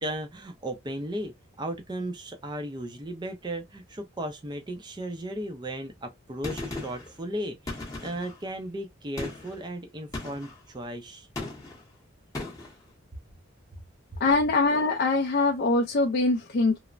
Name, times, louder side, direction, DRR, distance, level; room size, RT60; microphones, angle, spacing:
voice 1, 0.0-11.3, right 1 dB, 20° right, 0.5 m, -36 dB
Gunshot gunfire, 6.4-7.1 7.7-8.4 9.2-9.6 10.1-10.6 11.4-11.8 12.3-12.8, left 2 dB, 15° left, 0.8 m, -36 dB
voice 2, 14.2-16.8, left 3 dB, 45° left, 0.4 m, -23 dB
3.1 x 2.0 x 2.4 m
head